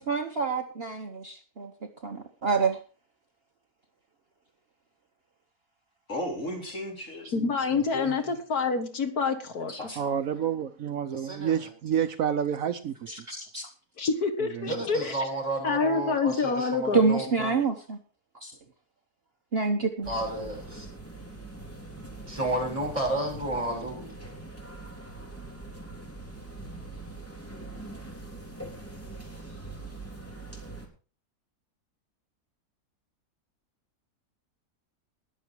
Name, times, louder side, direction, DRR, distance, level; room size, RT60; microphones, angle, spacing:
voice 1, 0.0-1.7 2.0-2.8 13.1-13.6 16.9-18.0 18.4-18.5 19.5-20.1, right 4 dB, 40° right, 4 dB, 1.3 m, -27 dB
voice 2, 6.1-7.3 7.7-8.3 9.7-10.0, left 1 dB, 55° left, 0 dB, 4.3 m, -35 dB
voice 3, 7.3-9.7 14.0-15.3 15.6-17.0, left 4 dB, 75° left, 7 dB, 2.1 m, -27 dB
voice 4, 10.0-12.9 14.5-14.8, right 8 dB, 65° right, 9 dB, 1.2 m, -29 dB
voice 5, 11.2-11.7 14.6-17.5 20.1-20.9 22.3-24.1, right 1 dB, 20° right, -2 dB, 6.5 m, -32 dB
sound 1, 20.0-30.9, right 2 dB, 10° left, 3.2 m, -42 dB
20.0 x 7.2 x 4.6 m, 0.36 s
omnidirectional pair, 1.6 m